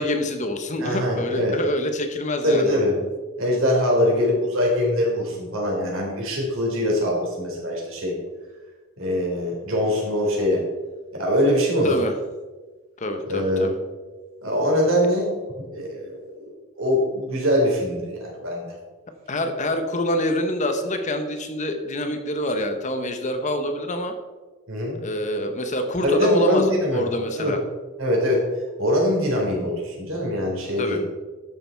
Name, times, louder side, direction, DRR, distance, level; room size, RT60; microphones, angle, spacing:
voice 1, 0.0-2.8 11.8-12.1 13.0-13.8 19.3-24.1 25.0-27.6 30.8-31.0, left 1 dB, 35° left, 6 dB, 1.0 m, -26 dB
voice 2, 0.8-1.5 2.4-3.0 3.4-8.1 9.0-10.6 11.1-11.9 13.3-13.7 14.4-15.3 15.6-18.7 24.7-25.0 26.0-27.1 27.4-27.6 28.0-28.4 28.8-31.0, left 1 dB, 65° right, -2 dB, 3.9 m, -23 dB
12.5 x 6.8 x 4.5 m, 1.3 s
head